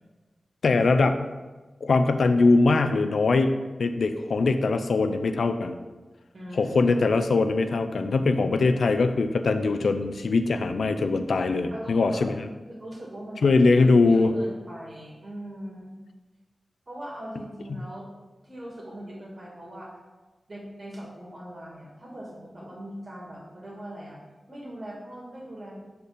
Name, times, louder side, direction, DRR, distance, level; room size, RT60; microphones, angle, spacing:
voice 1, 0.6-1.3 1.8-5.8 6.5-12.5 13.4-14.3, left 3 dB, 85° left, 9 dB, 0.5 m, -22 dB
voice 2, 6.3-7.0 11.7-12.2 12.6-15.9 16.9-18.1 18.4-20.0 20.5-24.2 24.5-25.8, equal, 50° right, -3 dB, 2.4 m, -40 dB
6.6 x 4.4 x 5.2 m, 1.2 s
cardioid pair, 60°, 0 cm